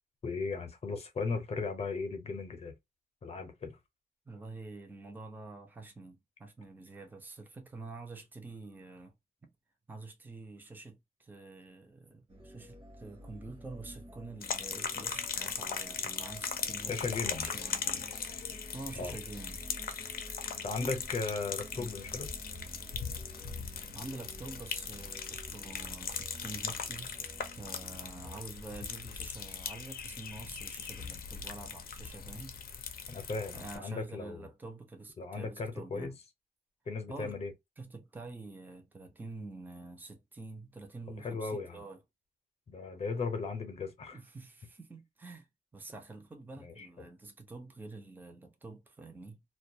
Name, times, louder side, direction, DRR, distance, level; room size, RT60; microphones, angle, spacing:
voice 1, 0.2-2.7 3.2-3.8 16.9-17.5 19.0-19.1 20.6-22.3 33.1-34.5 35.2-36.1 36.9-37.5 41.2-41.8 42.7-44.2 46.6-46.9, left 4 dB, 45° left, 0.7 m, -36 dB
voice 2, 4.3-9.1 9.4-9.5 9.9-19.6 20.8-20.9 21.7-21.9 23.7-27.2 27.6-32.6 33.5-36.2 37.1-37.4 37.8-42.0 44.1-49.4, right 3 dB, 10° right, 0.5 m, -47 dB
sound 1, 12.3-28.4, right 1 dB, 40° right, 0.9 m, -50 dB
sound 2, 14.4-33.8, left 7 dB, 85° left, 0.5 m, -39 dB
2.3 x 2.2 x 2.7 m
wide cardioid pair, 160°, 15 cm